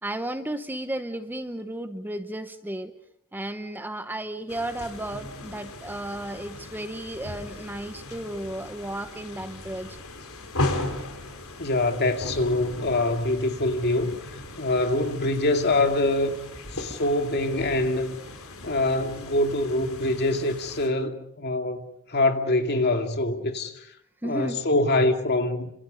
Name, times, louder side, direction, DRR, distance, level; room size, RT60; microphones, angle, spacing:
voice 1, 0.0-2.9 3.3-10.0 16.9-17.0 24.2-24.6, right 1 dB, 10° right, 1.0 m, -34 dB
sound 1, 4.5-20.9, left 2 dB, 75° left, 4.1 m, -37 dB
voice 2, 11.6-16.3 16.7-18.1 18.6-21.8 22.1-23.9 24.2-25.7, left 2 dB, 50° left, 2.4 m, -24 dB
30.0 x 26.5 x 5.3 m
head